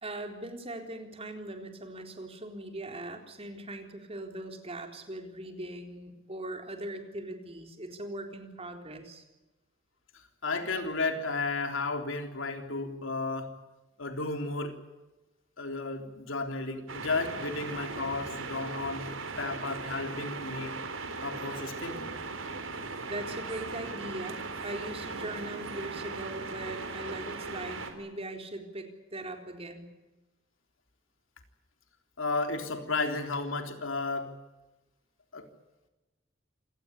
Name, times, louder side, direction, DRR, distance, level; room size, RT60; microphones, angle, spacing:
voice 1, 0.0-9.3 23.1-29.9, right 1 dB, 30° right, 5 dB, 4.0 m, -40 dB
voice 2, 10.1-13.5 14.0-14.8 15.6-19.1 19.4-20.8 21.2-22.2 32.2-34.3 35.3-35.5, left 3 dB, 75° left, 5 dB, 3.6 m, -33 dB
sound 1, 16.9-27.9, right 4 dB, 75° right, 3.8 m, -38 dB
27.5 x 19.0 x 8.3 m, 1.1 s
head